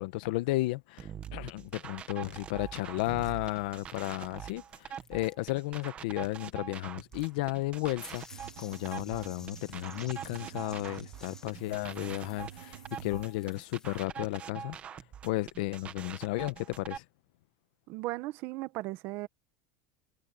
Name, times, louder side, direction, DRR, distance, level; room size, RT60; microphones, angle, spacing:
voice 1, 0.0-8.2 8.6-14.8 15.2-17.0, left 19 dB, 75° left, 1.0 m, -33 dB
sound 1, 1.0-17.0, right 8 dB, 25° right, 1.2 m, -44 dB
sound 2, 2.6-5.5 5.8-5.9 7.0-14.1, left 4 dB, 10° left, 1.1 m, -55 dB
sound 3, 8.3-13.3, right 14 dB, 75° right, 1.3 m, -48 dB
voice 2, 17.9-19.3, right 19 dB, 50° right, 1.1 m, -36 dB
supercardioid pair, 155°, 5 cm